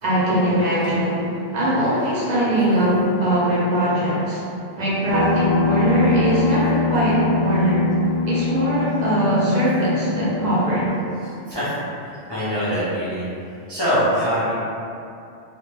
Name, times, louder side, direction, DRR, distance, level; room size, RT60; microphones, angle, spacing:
voice 1, 0.0-4.4 4.8-7.8 8.2-10.9, right 1 dB, 50° right, -8 dB, 0.5 m, -21 dB
sound 1, 5.1-10.9, left 4 dB, 85° right, 1.0 m, -23 dB
voice 2, 11.2-13.3 13.7-14.5, equal, 40° left, -13 dB, 0.3 m, -24 dB
2.1 x 2.1 x 3.0 m, 2.6 s
omnidirectional pair, 1.2 m